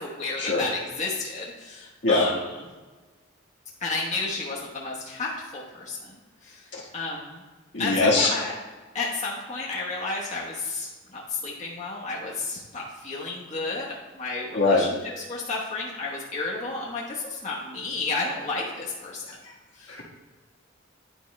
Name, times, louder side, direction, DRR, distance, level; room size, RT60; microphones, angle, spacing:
voice 1, 0.0-2.7 3.8-7.4 7.8-8.5 8.9-13.9 14.1-19.2 19.7-19.9, left 3 dB, 35° left, -6 dB, 1.1 m, -32 dB
voice 2, 7.7-8.3 14.5-14.9, left 3 dB, 55° left, -3 dB, 1.3 m, -21 dB
10.0 x 4.6 x 3.1 m, 1.3 s
head